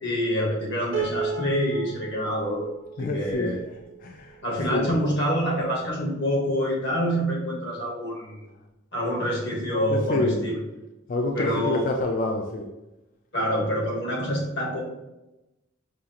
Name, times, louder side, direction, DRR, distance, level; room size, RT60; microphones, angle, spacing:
voice 1, 0.0-2.7 3.0-3.6 4.4-8.5 8.9-10.6 11.3-11.8 13.3-14.8, equal, 60° left, -1 dB, 1.1 m, -26 dB
Piano, 0.9-4.2, right 5 dB, 70° right, 0.7 m, -34 dB
voice 2, 3.0-3.5 4.0-4.3 4.7-4.9 9.9-10.5 11.1-12.7, left 2 dB, 45° left, 2 dB, 0.4 m, -27 dB
4.9 x 2.4 x 2.8 m, 0.97 s
head